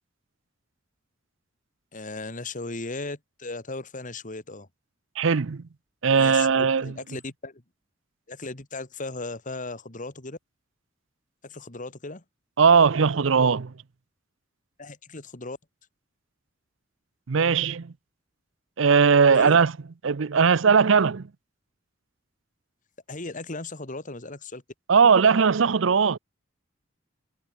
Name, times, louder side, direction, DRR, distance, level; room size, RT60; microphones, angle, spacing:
voice 1, 1.9-4.7 6.1-6.5 6.8-7.6 8.3-10.4 11.4-12.2 14.8-15.6 19.3-19.6 23.1-24.6, left 3 dB, 40° left, 2.3 m, -36 dB
voice 2, 5.2-5.6 6.0-6.9 12.6-13.7 17.3-17.9 18.8-19.8 20.0-21.3 24.9-26.2, right 5 dB, 70° right, 0.6 m, -19 dB
head